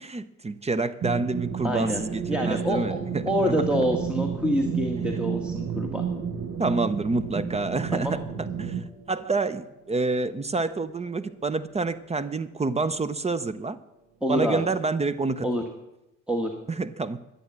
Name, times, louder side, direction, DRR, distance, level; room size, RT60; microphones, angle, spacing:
voice 1, 0.0-3.7 5.1-5.2 6.6-13.8 14.3-15.5 16.7-17.2, right 3 dB, 20° right, 15 dB, 0.5 m, -28 dB
sound 1, 1.0-8.8, right 7 dB, 65° right, 1.1 m, -31 dB
voice 2, 1.6-2.0 2.3-3.0 3.2-6.0 7.9-8.1 14.2-14.6 15.4-15.6 16.3-16.5, equal, 5° right, 2 dB, 1.3 m, -26 dB
sound 2, 1.8-14.9, right 4 dB, 80° right, 3.0 m, -47 dB
11.5 x 8.3 x 7.4 m, 0.92 s
cardioid pair, 90°, 30 cm